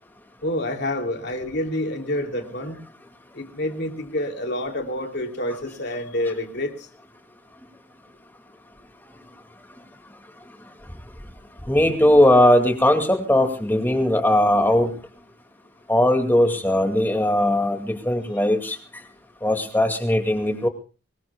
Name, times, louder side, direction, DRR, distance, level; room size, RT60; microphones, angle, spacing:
voice 1, 0.4-2.8 3.3-6.9, left 1 dB, 55° left, 3 dB, 3.0 m, -28 dB
voice 2, 11.7-14.9 15.9-18.8 19.4-20.7, left 1 dB, 10° left, 4 dB, 2.3 m, -19 dB
24.0 x 21.5 x 2.3 m, 0.34 s
head